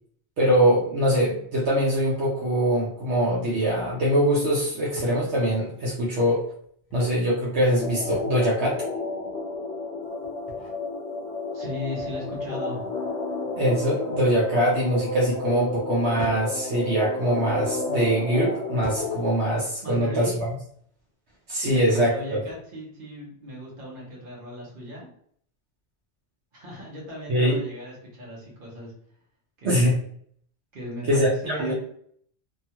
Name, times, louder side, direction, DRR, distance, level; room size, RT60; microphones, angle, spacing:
voice 1, 0.4-6.4 6.9-8.8 13.6-20.5 21.5-22.4 27.3-27.6 29.6-29.9 31.1-31.7, equal, 75° right, -5 dB, 1.1 m, -23 dB
sound 1, 5.0-5.3 6.6-7.2 8.1-8.6 10.2-10.8 12.0-12.5 13.9-14.5 16.2-16.5 17.5-17.8 18.8-19.2, right 3 dB, 25° left, 0.8 m, -42 dB
sound 2, 7.8-19.3, left 3 dB, 75° left, 0.9 m, -31 dB
voice 2, 11.5-12.8 19.8-20.4 21.6-25.1 26.5-28.9 29.6-30.0 30.7-31.7, left 1 dB, 50° right, -4 dB, 1.2 m, -37 dB
2.9 x 2.3 x 2.8 m, 0.63 s
omnidirectional pair, 1.2 m